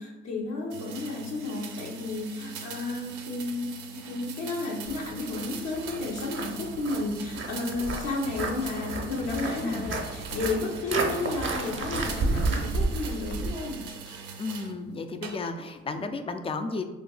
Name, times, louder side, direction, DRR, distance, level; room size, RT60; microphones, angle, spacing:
voice 1, 0.0-13.8, left 2 dB, 65° left, -4 dB, 0.8 m, -32 dB
sound 1, 0.7-14.8 15.2-15.8, right 6 dB, 80° right, 0.5 m, -42 dB
Walk footsteps, 4.9-13.5, right 3 dB, 40° right, 0.6 m, -32 dB
sound 2, 8.2-10.6 10.9-13.6 13.9-14.2, left 1 dB, 85° left, 0.5 m, -41 dB
voice 2, 9.6-10.0 14.4-16.8, left 3 dB, 20° left, 7 dB, 0.3 m, -33 dB
2.4 x 2.3 x 3.7 m, 1.1 s
hypercardioid pair, 50°, 30 cm